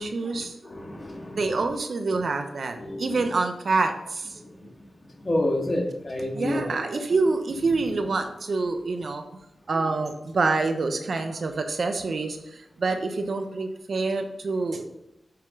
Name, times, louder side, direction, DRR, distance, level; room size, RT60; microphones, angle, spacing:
voice 1, 0.0-0.5 1.4-4.3 6.3-9.4 9.7-12.4 12.8-14.8, right 3 dB, 75° right, 6 dB, 1.0 m, -26 dB
voice 2, 0.7-1.4 2.8-3.2 5.2-6.6 6.9-7.0, left 1 dB, 35° left, 1 dB, 2.1 m, -28 dB
12.0 x 4.4 x 3.9 m, 0.90 s
cardioid pair, 45°, 0 cm